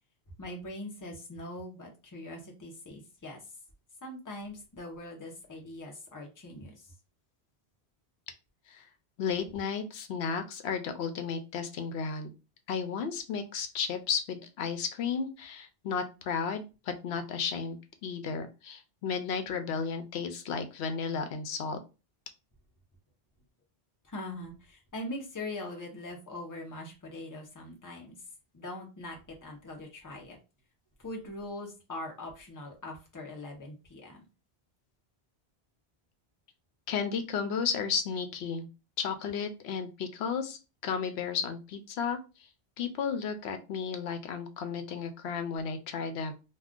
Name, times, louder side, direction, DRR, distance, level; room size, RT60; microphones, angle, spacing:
voice 1, 0.4-3.4 4.0-6.9 24.0-28.2 28.5-30.4 31.0-34.2, left 1 dB, 20° left, 1 dB, 0.7 m, -42 dB
voice 2, 9.2-12.3 12.7-21.8 36.9-38.7 39.0-42.2 42.8-46.3, left 6 dB, 80° left, 7 dB, 0.8 m, -33 dB
2.4 x 2.3 x 3.5 m, 0.30 s
omnidirectional pair, 1.1 m